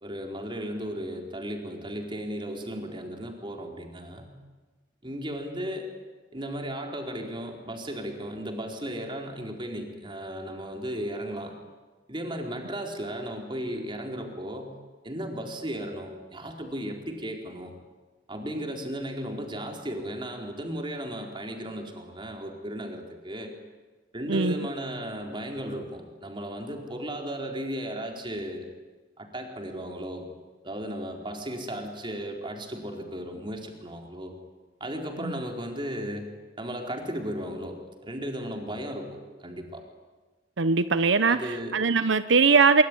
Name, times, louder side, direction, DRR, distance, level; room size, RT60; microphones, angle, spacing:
voice 1, 0.0-4.4 5.0-5.9 6.3-11.5 12.1-14.7 15.0-17.7 18.3-23.5 24.1-28.7 29.2-30.3 30.6-34.3 34.8-36.3 36.6-39.8 41.3-41.8, equal, 25° right, 2 dB, 4.3 m, -35 dB
voice 2, 40.6-42.8, right 4 dB, 85° right, 12 dB, 0.9 m, -21 dB
24.0 x 23.5 x 10.0 m, 1.3 s
head